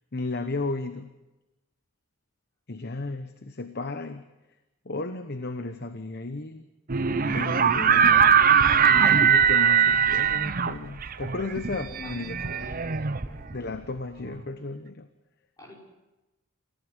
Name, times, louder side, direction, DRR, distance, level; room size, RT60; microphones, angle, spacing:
voice 1, 0.1-1.1 2.7-4.2 4.8-6.6 7.2-8.4 9.1-12.5 13.5-15.1, left 3 dB, 45° left, 9 dB, 1.0 m, -34 dB
sound 1, 6.9-13.7, right 7 dB, 40° right, 0.7 m, -21 dB
voice 2, 7.1-7.6 11.9-13.5 15.6-15.7, left 2 dB, 15° left, -2 dB, 5.7 m, -44 dB
28.0 x 15.0 x 8.1 m, 1.0 s
head